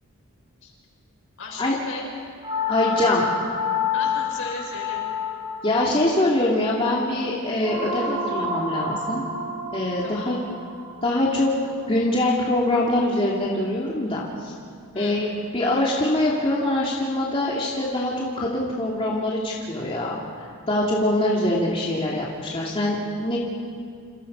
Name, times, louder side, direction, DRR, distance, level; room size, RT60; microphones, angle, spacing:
voice 1, 1.4-2.1 3.9-5.0 10.0-10.3 14.9-15.3, left 3 dB, 65° left, -1 dB, 7.1 m, -36 dB
sound 1, 2.4-12.6, left 4 dB, 25° right, 5.5 m, -29 dB
voice 2, 2.7-3.2 5.6-9.2 9.7-10.4 11.0-11.5 11.9-14.5 14.9-20.2 20.7-23.4, left 1 dB, 25° left, -4 dB, 2.7 m, -23 dB
29.0 x 28.5 x 5.5 m, 2.2 s
head